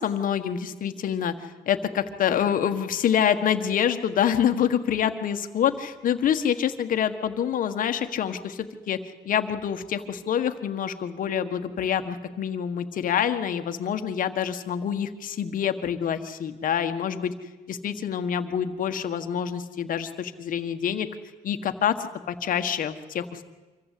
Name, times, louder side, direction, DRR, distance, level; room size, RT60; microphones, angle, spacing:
voice 1, 0.0-9.0 9.2-17.3 17.7-21.1 21.4-23.4, left 9 dB, 55° left, 9 dB, 1.6 m, -26 dB
25.5 x 14.5 x 8.5 m, 1.2 s
cardioid pair, 110°, 17 cm